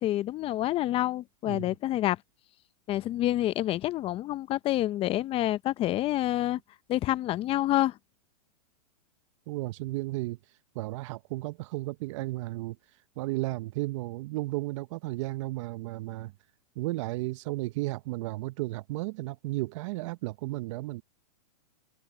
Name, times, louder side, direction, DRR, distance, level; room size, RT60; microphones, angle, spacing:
voice 1, 0.0-2.2 2.9-6.6 6.9-8.0, left 14 dB, 30° left, 0.8 m, -28 dB
voice 2, 9.5-10.4 10.7-12.8 13.2-16.3 16.8-21.0, right 20 dB, 50° right, 0.8 m, -34 dB
hypercardioid pair, 125°, 20 cm